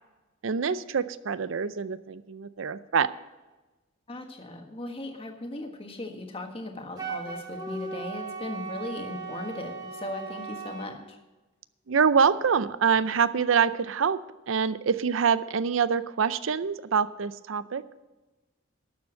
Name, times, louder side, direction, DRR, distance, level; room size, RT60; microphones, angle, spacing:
voice 1, 0.4-3.1 11.9-14.2 14.5-18.0, right 6 dB, 75° right, 15 dB, 0.5 m, -25 dB
voice 2, 4.1-11.2, left 2 dB, 25° left, 4 dB, 1.4 m, -38 dB
Wind instrument woodwind instrument, 7.0-10.9, right 4 dB, 20° right, 1.4 m, -37 dB
12.0 x 7.0 x 7.8 m, 1.2 s
head